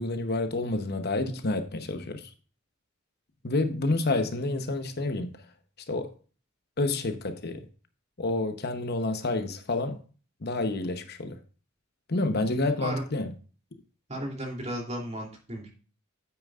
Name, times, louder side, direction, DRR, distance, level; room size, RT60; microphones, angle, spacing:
voice 1, 0.0-2.3 3.4-5.3 5.9-6.1 6.8-7.6 8.2-10.0 10.4-11.4 12.1-13.3, left 2 dB, 50° left, 0.9 m, -29 dB
voice 2, 14.1-15.8, equal, 35° right, 2.9 m, -35 dB
9.2 x 8.9 x 2.4 m
head